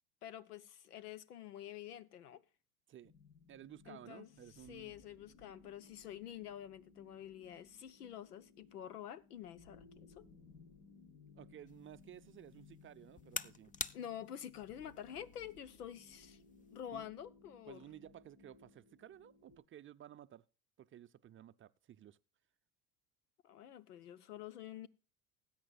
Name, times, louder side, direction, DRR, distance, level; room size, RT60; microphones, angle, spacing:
voice 1, 0.2-2.4 3.9-4.3 4.7-10.3 13.9-16.4 16.7-17.8 23.4-24.9, left 10 dB, 85° left, 0.9 m, -48 dB
sound 1, 3.0-19.6, left 4 dB, 70° left, 4.1 m, -62 dB
voice 2, 3.5-4.9 11.4-13.7 16.9-17.1 17.7-20.4 20.8-22.2, right 11 dB, 30° right, 0.5 m, -55 dB
sound 2, 11.7-16.8, left 5 dB, 20° left, 0.5 m, -49 dB
19.5 x 8.8 x 2.4 m
hypercardioid pair, 75°, 45 cm